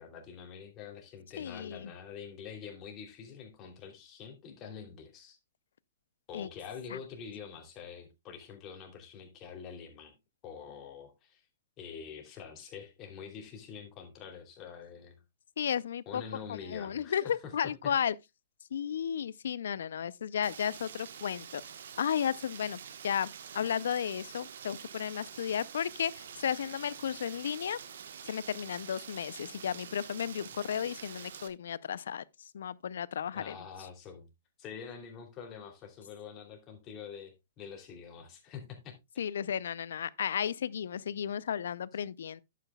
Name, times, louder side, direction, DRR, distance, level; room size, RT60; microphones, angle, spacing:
voice 1, 0.0-5.4 6.3-10.1 10.4-11.4 11.8-15.2 16.1-17.9 33.3-34.3 34.6-38.9, left 7 dB, 30° left, 2.8 m, -46 dB
voice 2, 1.4-1.9 6.3-6.5 6.9-7.0 15.6-16.2 16.7-18.1 18.7-21.6 22.0-22.8 23.0-27.8 28.3-32.2 32.5-33.5 39.2-42.4, left 8 dB, 70° left, 0.4 m, -33 dB
Rain, 20.4-31.5, right 8 dB, 70° right, 1.1 m, -47 dB
11.0 x 8.3 x 2.2 m
hypercardioid pair, 125°, 0 cm